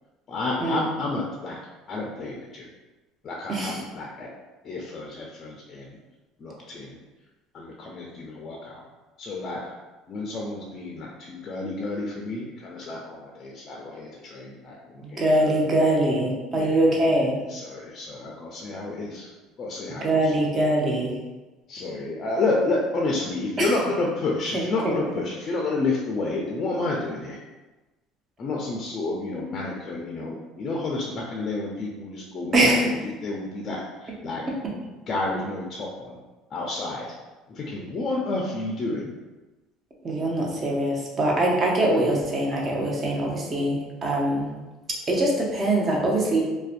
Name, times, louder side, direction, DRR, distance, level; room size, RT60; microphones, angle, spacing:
voice 1, 0.3-1.6 1.9-2.7 3.2-4.3 4.6-6.0 6.4-7.0 7.5-8.8 9.2-9.6 10.1-15.6 16.5-16.9 17.5-19.3 19.6-20.3 21.7-27.4 28.4-32.9 33.2-34.4 35.1-36.2 36.5-37.2 37.5-39.1, left 2 dB, 40° left, -1 dB, 0.4 m, -30 dB
voice 2, 3.5-3.8 15.0-17.4 20.0-21.2 23.6-23.7 24.5-24.9 32.5-33.0 34.6-34.7 40.0-44.5 45.1-46.4, right 1 dB, 35° right, -2 dB, 0.6 m, -23 dB
2.5 x 2.1 x 2.4 m, 1.2 s
supercardioid pair, 90°, 0 cm